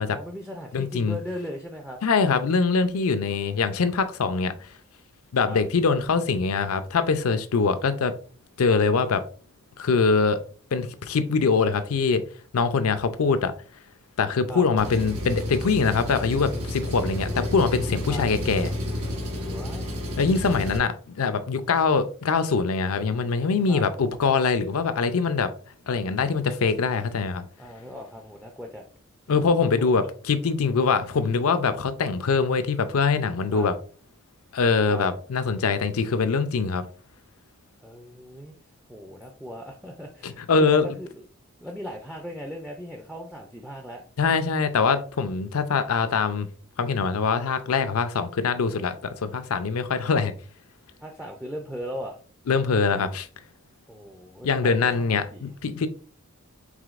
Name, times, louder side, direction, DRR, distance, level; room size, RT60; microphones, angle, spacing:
voice 1, 0.1-2.0 3.5-3.6 5.4-5.6 14.5-14.6 18.1-18.2 19.5-19.8 23.7-23.8 27.6-28.8 29.5-29.9 33.5-33.7 34.9-35.1 37.8-38.6 38.9-41.1 41.6-44.0 51.0-52.2 53.9-55.5, equal, 5° right, 0.4 m, -38 dB
voice 2, 0.7-1.2 2.0-4.5 5.3-8.1 8.6-9.2 9.8-10.4 10.7-12.2 12.5-13.5 14.2-18.7 20.2-25.5 25.9-27.4 29.3-33.7 34.5-36.9 40.2-40.9 44.2-46.5 46.8-50.3 52.5-53.3 54.4-55.9, left 5 dB, 80° left, 0.5 m, -23 dB
Engine, 14.8-20.8, left 1 dB, 90° right, 1.2 m, -31 dB
4.9 x 3.4 x 2.4 m
head